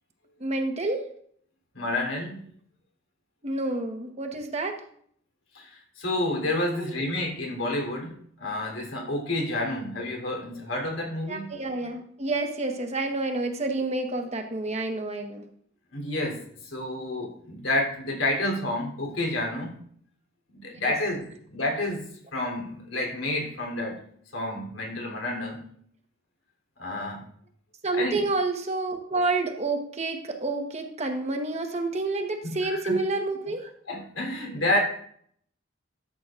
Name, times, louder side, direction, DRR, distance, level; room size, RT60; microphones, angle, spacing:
voice 1, 0.4-1.0 3.4-4.8 6.8-7.1 11.3-15.5 20.7-20.9 27.8-33.7, right 2 dB, 35° right, 4 dB, 1.1 m, -29 dB
voice 2, 1.7-2.4 5.5-11.5 15.9-19.8 20.5-22.0 22.3-24.0 24.3-25.6 26.8-27.2 27.9-28.2 32.4-33.0 33.9-34.8, left 1 dB, 90° left, 0 dB, 3.2 m, -29 dB
13.5 x 8.1 x 2.5 m, 0.62 s
head